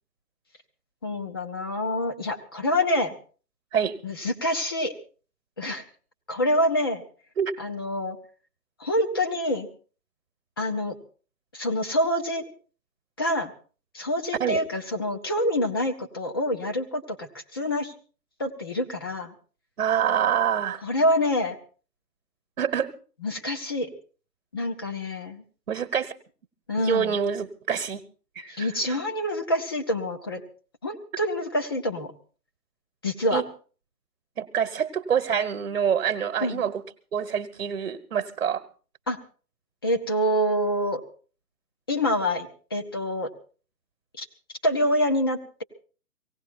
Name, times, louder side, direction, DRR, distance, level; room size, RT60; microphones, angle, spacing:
voice 1, 1.0-3.2 4.0-4.9 5.6-5.8 6.3-7.0 7.6-8.2 8.8-9.7 10.6-11.0 11.5-12.5 13.2-13.5 13.9-17.9 18.4-19.3 20.8-21.6 23.2-23.9 24.5-25.4 26.7-27.1 28.6-30.4 30.8-32.1 33.0-33.4 36.4-36.6 39.1-39.2 39.8-41.0 41.9-43.3 44.2-44.3 44.6-45.6, left 1 dB, 15° left, 4 dB, 0.7 m, -26 dB
voice 2, 19.8-20.8 22.6-22.9 25.7-26.1 26.8-28.0 28.3-29.0 33.3-33.4 34.4-36.8 37.1-38.6, right 8 dB, 50° right, 7 dB, 1.3 m, -26 dB
18.0 x 16.5 x 4.4 m, 0.40 s
figure-of-eight pair, 140°, 47 cm